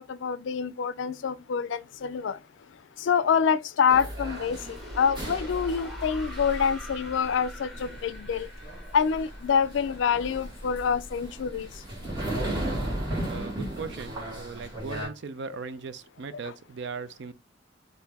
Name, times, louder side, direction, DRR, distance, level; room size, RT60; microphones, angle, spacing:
voice 1, 0.0-2.4 3.0-8.5 8.9-11.7, left 6 dB, 75° left, 0.4 m, -26 dB
sound 1, 3.9-15.1, right 1 dB, 25° right, 1.8 m, -36 dB
sound 2, 4.1-11.0, left 1 dB, ahead, 1.3 m, -46 dB
voice 2, 12.9-17.3, right 5 dB, 65° right, 0.5 m, -39 dB
4.5 x 2.6 x 3.4 m
head